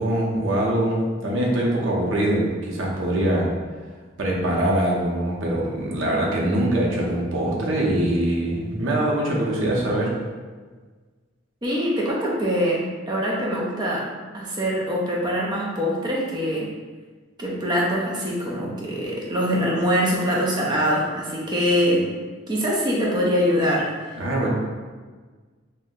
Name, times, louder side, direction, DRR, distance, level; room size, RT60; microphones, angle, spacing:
voice 1, 0.0-3.5 4.2-10.1 24.2-24.5, right 1 dB, 75° right, -3 dB, 0.7 m, -23 dB
voice 2, 11.6-14.0 14.3-16.7 17.4-22.0 22.5-23.9, equal, 20° right, -4 dB, 0.4 m, -23 dB
2.5 x 2.1 x 3.6 m, 1.4 s
head